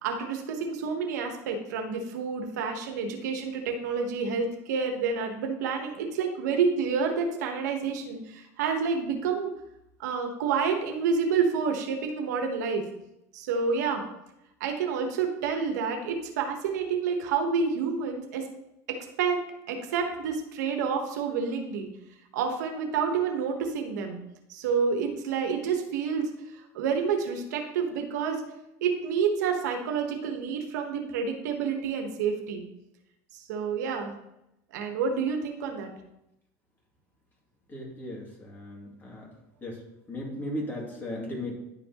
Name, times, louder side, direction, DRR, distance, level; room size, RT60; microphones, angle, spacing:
voice 1, 0.0-9.5 10.0-12.8 13.3-14.0 14.6-18.4 18.9-19.4 19.7-21.9 22.3-24.2 24.5-28.4 28.8-32.6 33.3-34.1 34.7-35.9, right 5 dB, 85° right, 4 dB, 1.2 m, -29 dB
voice 2, 37.7-39.3 39.6-39.8 40.1-41.5, left 1 dB, 20° left, -2 dB, 2.5 m, -36 dB
10.5 x 5.1 x 3.0 m, 0.85 s
supercardioid pair, 115°, 9 cm